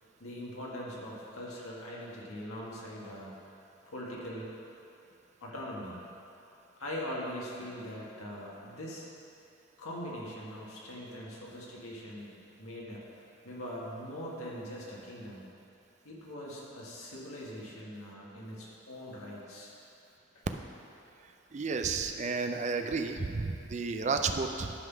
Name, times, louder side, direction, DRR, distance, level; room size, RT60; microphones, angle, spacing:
voice 1, 0.2-3.3 3.9-4.5 5.4-6.0 6.8-9.1 9.8-15.4 16.0-19.7, equal, 85° left, -4 dB, 1.7 m, -42 dB
voice 2, 21.5-24.7, right 4 dB, 35° right, 6 dB, 0.4 m, -32 dB
11.0 x 3.9 x 6.0 m, 2.8 s
head